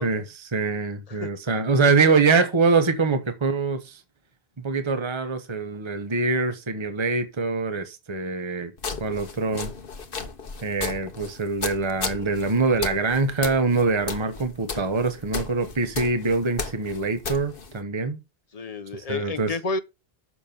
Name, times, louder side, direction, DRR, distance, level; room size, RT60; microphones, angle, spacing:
voice 1, 0.0-4.0 4.6-8.7 9.0-9.7 10.6-18.2 19.1-19.6, right 4 dB, 30° right, 1.1 m, -24 dB
sound 1, 8.8-17.8, left 4 dB, 60° left, 1.4 m, -35 dB
voice 2, 18.5-19.8, left 3 dB, 40° left, 0.9 m, -30 dB
7.1 x 6.1 x 5.4 m
omnidirectional pair, 1.0 m